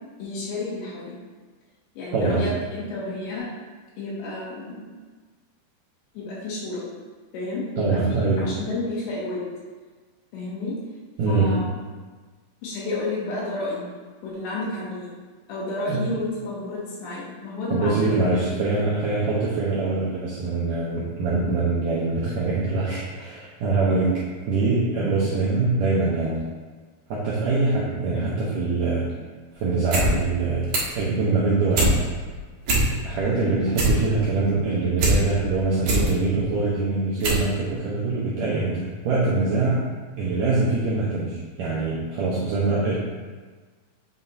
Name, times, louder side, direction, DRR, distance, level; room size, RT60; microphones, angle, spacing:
voice 1, 0.2-1.2 2.0-3.5 4.0-5.0 6.2-6.9 7.3-9.5 10.3-10.8 11.3-11.8 12.6-13.9 14.2-15.1 15.5-18.6, left 2 dB, 85° left, -7 dB, 3.4 m, -31 dB
voice 2, 2.1-2.5 7.8-8.5 11.2-11.6 15.9-16.0 17.7-26.4 27.1-29.1 29.5-32.0 33.0-39.9 40.2-43.0, right 3 dB, 80° right, -7 dB, 1.9 m, -24 dB
sound 1, 29.7-30.1 30.4-31.0 31.4-31.9 32.3-32.4 32.6-33.2 33.5-35.2 35.6-36.1 36.7-36.8 37.2-37.5 37.8-37.9, right 2 dB, 60° right, 1.8 m, -22 dB
8.1 x 5.8 x 2.8 m, 1.4 s
omnidirectional pair, 5.0 m